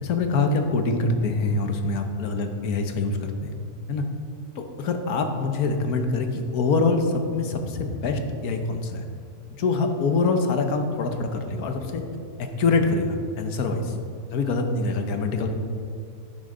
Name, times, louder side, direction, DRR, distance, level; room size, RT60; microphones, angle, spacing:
voice 1, 0.0-3.5 3.9-4.0 4.5-9.1 9.5-12.0 12.4-14.0 14.3-15.5, left 3 dB, 75° left, 5 dB, 1.4 m, -25 dB
11.5 x 9.6 x 3.8 m, 2.4 s
omnidirectional pair, 1.6 m